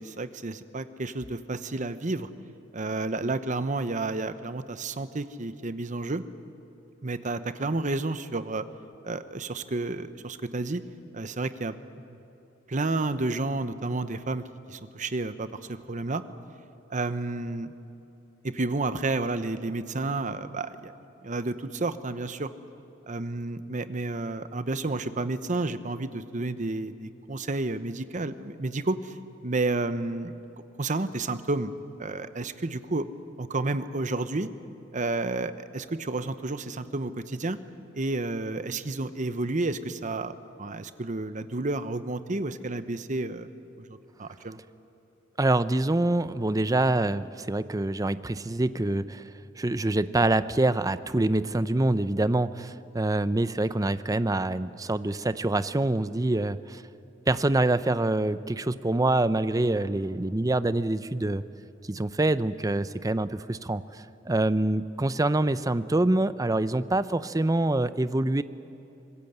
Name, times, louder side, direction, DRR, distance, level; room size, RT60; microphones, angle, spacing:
voice 1, 0.0-2.3 2.7-6.2 7.0-8.6 9.0-10.8 11.1-11.8 12.1-12.2 12.7-14.4 14.7-16.2 16.9-17.7 18.4-20.9 21.2-22.5 23.1-29.1 29.4-30.3 30.8-31.7 32.0-33.1 33.4-34.5 34.9-37.6 37.9-43.5 43.9-44.6, right 2 dB, 40° right, 12 dB, 0.9 m, -31 dB
voice 2, 45.4-49.2 49.6-56.8 57.3-61.4 61.9-68.4, right 2 dB, 20° right, 14 dB, 0.6 m, -25 dB
25.5 x 21.0 x 8.1 m, 2.9 s
head